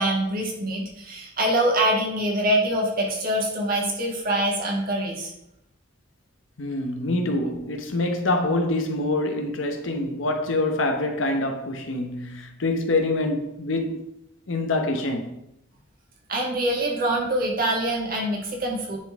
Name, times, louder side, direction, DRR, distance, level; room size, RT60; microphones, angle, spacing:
voice 1, 0.0-5.3 16.3-19.0, right 1 dB, 45° right, 1.6 m, -24 dB
voice 2, 6.6-14.0 14.5-15.4, left 2 dB, 70° left, 0.8 m, -25 dB
9.7 x 4.1 x 3.5 m
head